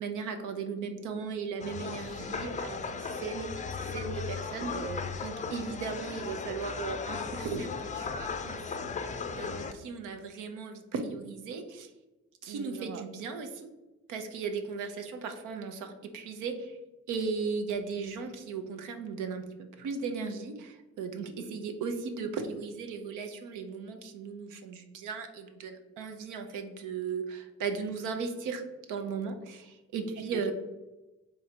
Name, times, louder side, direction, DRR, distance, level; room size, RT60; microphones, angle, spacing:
voice 1, 0.0-4.7 5.2-11.9 12.4-13.7 14.1-16.8 17.1-30.5, right 5 dB, 85° right, 6 dB, 0.7 m, -37 dB
sound 1, 1.6-9.7, left 5 dB, 25° left, 0.4 m, -37 dB
voice 2, 4.6-5.1 12.4-13.0 30.3-30.5, right 6 dB, 50° right, 7 dB, 0.4 m, -41 dB
3.7 x 3.2 x 4.4 m, 1.1 s
cardioid pair, 90°, 30 cm